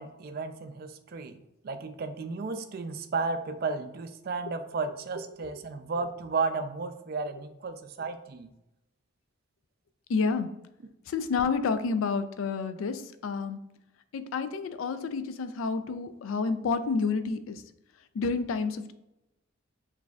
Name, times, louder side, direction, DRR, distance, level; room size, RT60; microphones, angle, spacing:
voice 1, 0.0-1.4 1.6-8.5, right 4 dB, 50° right, 9 dB, 0.3 m, -33 dB
voice 2, 10.1-10.5 11.1-13.6 14.1-17.6 18.1-18.9, left 4 dB, 80° left, 11 dB, 0.4 m, -29 dB
6.1 x 2.6 x 2.3 m, 0.89 s
head